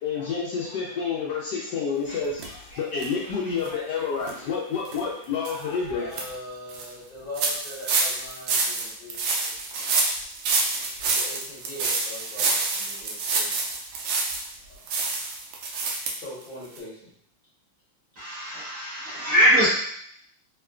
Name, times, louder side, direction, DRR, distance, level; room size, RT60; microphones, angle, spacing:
voice 1, 0.0-6.2, left 5 dB, 70° left, -5 dB, 1.0 m, -29 dB
sound 1, 2.4-2.5 3.0-3.1 3.6-3.7 4.2-4.3 4.8-5.0 5.4-5.6 5.9-6.2 6.7-6.8 7.4-14.5 14.9-16.1 16.4-16.5 16.8-16.9, right 3 dB, 90° right, 1.4 m, -27 dB
voice 2, 5.9-9.9 11.0-13.8 14.6-14.9 16.1-17.1 18.8-19.0, left 1 dB, 30° left, -9 dB, 1.0 m, -41 dB
voice 3, 18.2-19.7, equal, 55° right, -9 dB, 1.0 m, -22 dB
3.6 x 2.2 x 2.3 m, 0.65 s
omnidirectional pair, 2.1 m